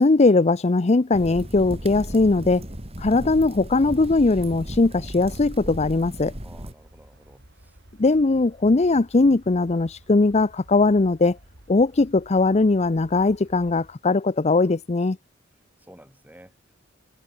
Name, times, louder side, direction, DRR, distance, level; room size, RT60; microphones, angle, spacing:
voice 1, 0.0-2.6 3.0-6.3 8.0-11.4 11.7-15.2, left 3 dB, 35° left, 0.6 m, -20 dB
sound 1, 1.1-6.7, equal, 30° right, 3.5 m, -36 dB
sound 2, 5.3-13.9, right 1 dB, 60° right, 5.5 m, -52 dB
voice 2, 6.4-7.8 15.8-16.6, right 1 dB, 10° right, 7.1 m, -51 dB
head